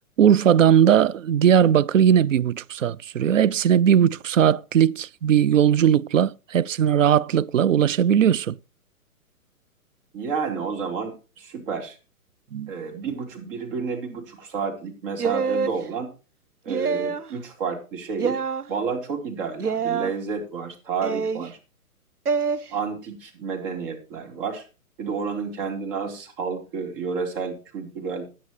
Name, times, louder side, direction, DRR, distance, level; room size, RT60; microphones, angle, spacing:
voice 1, 0.2-8.6 12.5-12.7, right 9 dB, 60° right, 0.5 m, -19 dB
voice 2, 10.1-12.0 12.7-16.1 16.6-18.4 18.7-21.6 22.7-24.6 25.0-28.3, right 5 dB, 35° right, 3.8 m, -30 dB
sound 1, 15.2-15.8 16.7-17.3 18.2-18.6 19.6-20.1 21.0-21.5 22.3-22.6, right 5 dB, 85° right, 0.9 m, -25 dB
16.0 x 10.0 x 3.1 m
figure-of-eight pair, 125°, 44 cm